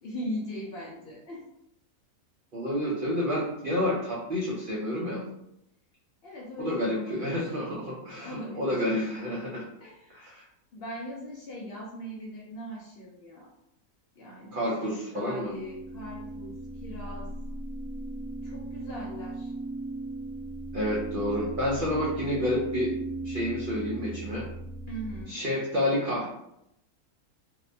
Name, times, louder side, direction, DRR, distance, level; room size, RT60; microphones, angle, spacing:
voice 1, 0.0-1.4 6.2-7.5 8.2-8.9 9.8-10.4 10.7-13.5 14.2-16.5 16.8-17.3 18.4-19.5 24.9-25.4, equal, 65° left, -4 dB, 0.6 m, -40 dB
voice 2, 2.5-5.2 6.6-9.7 10.1-10.4 14.5-15.5 20.7-22.9 23.2-24.5 25.3-26.3, left 1 dB, 80° right, -4 dB, 0.4 m, -29 dB
sound 1, 15.1-25.2, right 2 dB, 60° right, 1.0 m, -38 dB
2.7 x 2.1 x 2.5 m, 0.80 s
omnidirectional pair, 1.5 m